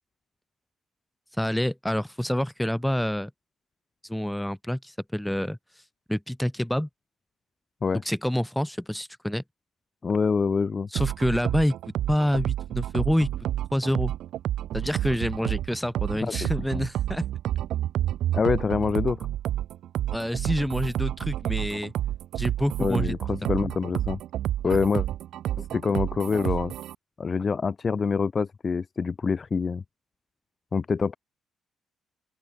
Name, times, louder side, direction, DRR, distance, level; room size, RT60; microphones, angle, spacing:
voice 1, 1.3-3.3 4.0-5.6 6.1-6.9 8.0-9.4 10.9-11.8 12.1-13.3 13.7-14.1 14.7-17.2 20.1-21.9 22.4-23.1 24.6-24.8, equal, 5° left, 2.8 m, -27 dB
voice 2, 10.0-10.9 16.4-16.8 18.3-19.3 22.8-24.2 24.6-25.1 25.6-26.7 27.2-29.8 30.7-31.2, left 5 dB, 35° left, 0.6 m, -26 dB
sound 1, 11.0-27.0, right 12 dB, 80° right, 3.3 m, -29 dB
open air
cardioid pair, 90°, 0 cm